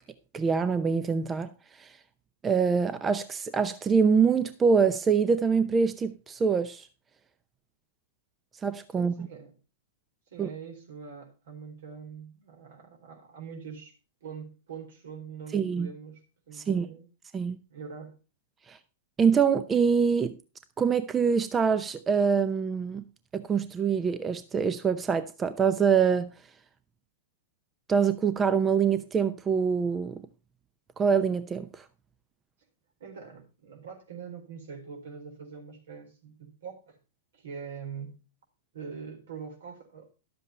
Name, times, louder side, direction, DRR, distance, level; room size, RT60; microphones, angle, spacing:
voice 1, 0.3-1.5 1.8-1.9 2.4-6.9 8.6-9.1 10.4-10.5 15.5-15.9 16.7-16.8 17.3-17.6 18.7-18.8 19.2-20.4 20.8-23.0 23.3-26.3 27.9-30.2 31.0-31.8, right 6 dB, 20° right, 0.7 m, -25 dB
voice 2, 8.9-9.5 10.3-14.0 14.2-17.1 17.7-18.2 33.0-37.0 37.3-38.2 38.7-40.1, right 6 dB, 75° right, 4.1 m, -43 dB
11.5 x 7.9 x 4.2 m
hypercardioid pair, 115°, 0 cm